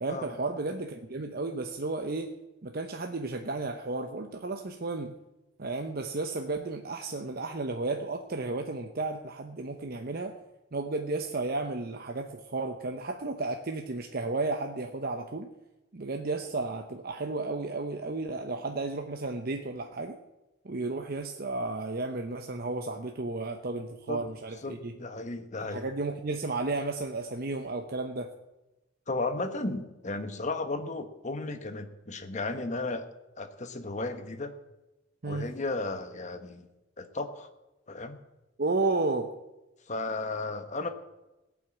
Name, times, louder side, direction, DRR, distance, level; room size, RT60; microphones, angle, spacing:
voice 1, 0.0-5.1 5.6-10.4 10.7-15.5 15.9-20.2 20.6-24.9 25.7-28.3 35.2-35.5 38.6-39.4, right 3 dB, 50° right, 4 dB, 0.8 m, -33 dB
voice 2, 24.6-25.8 29.1-33.1 33.4-34.5 35.2-36.7 37.0-37.5 37.9-38.2 39.9-40.9, left 2 dB, 40° left, 8 dB, 1.2 m, -34 dB
18.0 x 6.1 x 8.3 m, 1.0 s
head